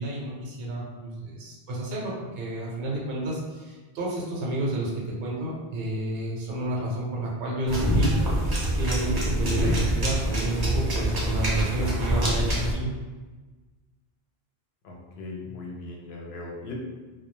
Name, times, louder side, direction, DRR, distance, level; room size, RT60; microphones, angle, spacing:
voice 1, 0.0-4.9 5.2-8.1 8.8-12.9, right 1 dB, 70° right, -3 dB, 0.8 m, -30 dB
sound 1, 7.7-12.7, right 1 dB, 30° right, 0.5 m, -25 dB
voice 2, 14.8-16.7, left 3 dB, 80° left, -2 dB, 0.8 m, -39 dB
2.3 x 2.2 x 2.9 m, 1.3 s
omnidirectional pair, 1.0 m